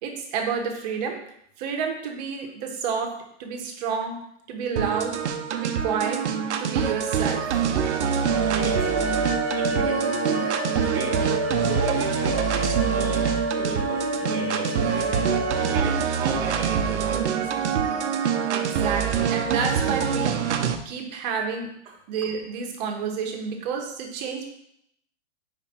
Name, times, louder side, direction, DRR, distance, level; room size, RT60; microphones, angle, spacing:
voice 1, 0.0-1.2 1.6-4.2 4.5-5.2 5.5-6.3 6.6-7.8 18.5-21.7 22.1-24.5, right 6 dB, 35° right, 2 dB, 1.1 m, -30 dB
sound 1, 4.8-20.8, right 7 dB, 75° right, 0.8 m, -25 dB
sound 2, 8.2-15.8, equal, 20° left, 0.8 m, -29 dB
voice 2, 8.3-9.1 9.6-11.2 11.6-13.3 13.6-15.2 15.6-17.6 21.9-22.0, right 4 dB, 10° right, -5 dB, 0.7 m, -35 dB
5.1 x 4.9 x 4.3 m, 0.73 s
hypercardioid pair, 145°, 35 cm